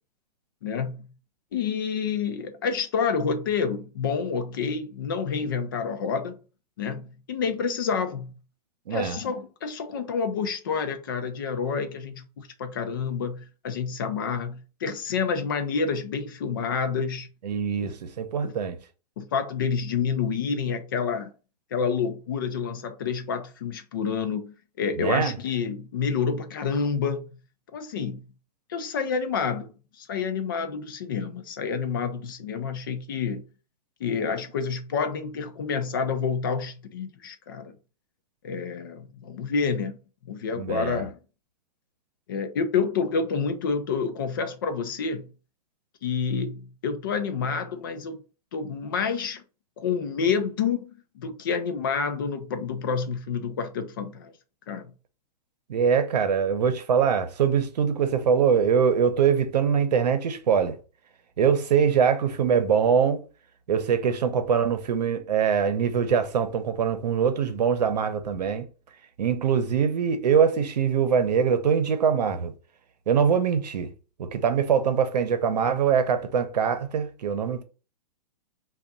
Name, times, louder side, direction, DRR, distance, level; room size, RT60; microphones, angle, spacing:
voice 1, 0.6-1.1 1.5-6.4 6.8-8.3 8.9-17.3 17.8-17.9 18.4-18.5 19.2-21.3 21.7-27.3 27.7-28.2 28.7-29.7 30.0-33.4 34.0-37.7 38.4-40.0 40.3-41.2 42.3-45.3 46.0-48.2 48.5-49.4 49.8-54.3 54.7-54.9, left 5 dB, 35° left, 0.4 m, -28 dB
voice 2, 8.9-9.2 17.4-18.8 25.0-25.4 40.5-41.0 55.7-60.8 61.4-63.2 63.7-68.7 69.2-72.5 73.1-73.9 74.2-77.6, right 7 dB, 80° right, 0.8 m, -23 dB
3.4 x 2.4 x 3.9 m
hypercardioid pair, 175°, 21 cm